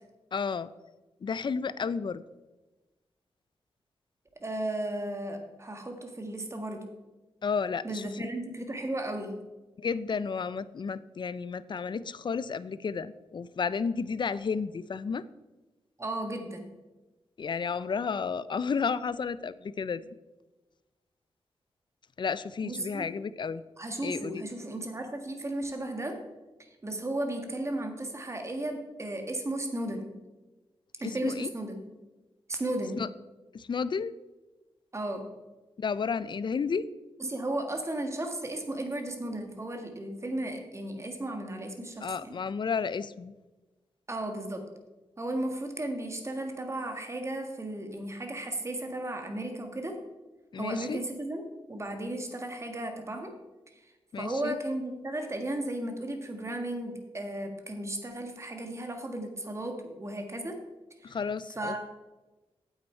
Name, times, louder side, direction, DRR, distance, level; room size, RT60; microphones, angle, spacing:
voice 1, 0.3-0.7 1.2-2.2 7.4-8.0 9.8-15.2 17.4-20.0 22.2-23.6 24.0-24.4 31.0-31.5 33.0-33.1 33.5-34.1 35.8-36.8 42.0-43.3 50.5-51.0 54.1-54.6 61.0-61.9, left 5 dB, 50° left, 16 dB, 0.4 m, -32 dB
voice 2, 4.4-6.8 7.8-9.4 16.0-16.7 22.6-23.1 23.8-26.2 26.8-30.1 31.0-31.8 32.5-33.1 34.9-35.3 37.2-42.3 44.1-44.7 45.2-50.0 50.6-53.3 53.7-53.8 54.2-60.6 61.0-61.2 61.6-61.9, right 1 dB, 25° right, 5 dB, 1.5 m, -35 dB
9.0 x 8.0 x 4.4 m, 1.1 s
wide cardioid pair, 85°, 10 cm